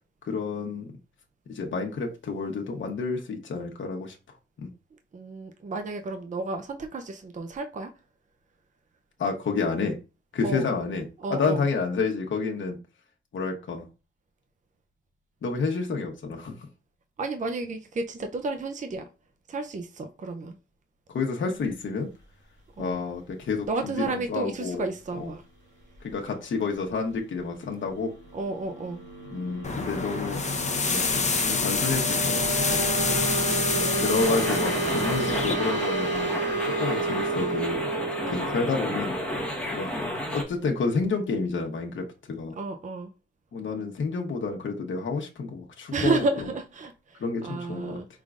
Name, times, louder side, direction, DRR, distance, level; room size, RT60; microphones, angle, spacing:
voice 1, 0.2-0.9 1.5-4.2 4.6-4.7 9.2-10.0 10.3-11.0 11.3-12.8 13.3-13.9 15.4-16.5 21.1-22.1 22.8-24.9 25.2-25.3 26.0-28.1 29.3-30.4 30.9-32.8 34.0-36.3 36.6-37.8 38.3-39.1 39.7-39.9 40.3-42.5 43.5-46.3 47.2-48.0, left 4 dB, 65° left, 1.0 m, -29 dB
voice 2, 5.1-7.9 10.4-10.7 11.2-11.6 17.2-19.0 19.5-20.6 22.8-23.0 23.7-25.4 28.3-29.0 33.8-34.7 38.2-38.4 42.6-43.1 45.9-48.1, right 3 dB, 35° right, 0.5 m, -32 dB
sound 1, 28.1-40.6, right 3 dB, 55° right, 2.4 m, -32 dB
sound 2, 29.6-35.5, left 4 dB, 35° left, 0.7 m, -27 dB
sound 3, 34.2-40.4, left 1 dB, 5° left, 1.1 m, -32 dB
5.0 x 3.7 x 2.4 m
wide cardioid pair, 120°, 21 cm